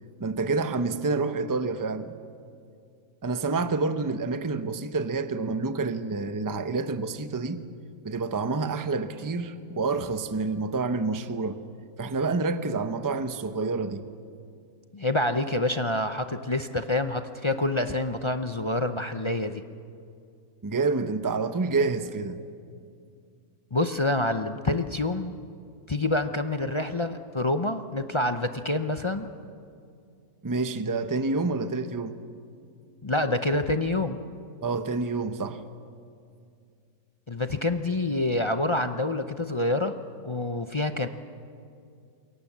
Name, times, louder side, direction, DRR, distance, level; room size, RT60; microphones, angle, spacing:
voice 1, 0.2-2.1 3.2-7.6 8.0-11.6 12.0-14.1 20.6-22.4 30.4-32.2 34.6-35.6, right 3 dB, 20° right, 0.6 m, -28 dB
voice 2, 14.9-19.6 23.7-25.3 25.9-29.3 33.0-34.2 37.3-40.0 40.2-41.1, left 2 dB, 30° left, 0.5 m, -27 dB
28.0 x 23.0 x 7.4 m
omnidirectional pair, 1.6 m